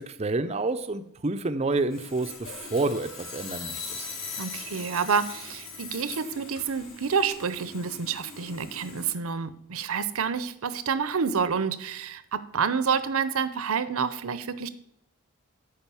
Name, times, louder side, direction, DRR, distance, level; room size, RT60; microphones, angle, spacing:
voice 1, 0.0-4.0, right 3 dB, 30° right, 10 dB, 0.5 m, -29 dB
Sawing, 1.9-9.1, left 4 dB, 60° left, 2.8 m, -40 dB
voice 2, 4.4-14.7, right 6 dB, 70° right, 14 dB, 0.7 m, -28 dB
9.0 x 5.1 x 7.0 m, 0.75 s
head